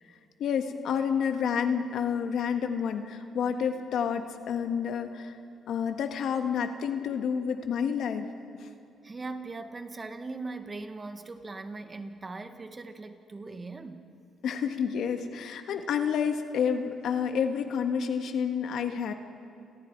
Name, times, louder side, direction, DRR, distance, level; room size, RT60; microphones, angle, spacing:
voice 1, 0.4-5.3 5.7-8.3 8.5-8.7 14.4-19.1, left 7 dB, 75° left, 6 dB, 1.8 m, -29 dB
voice 2, 9.0-14.1, right 3 dB, 25° right, 7 dB, 1.7 m, -40 dB
29.0 x 28.0 x 4.8 m, 2.5 s
cardioid pair, 90°, 0 cm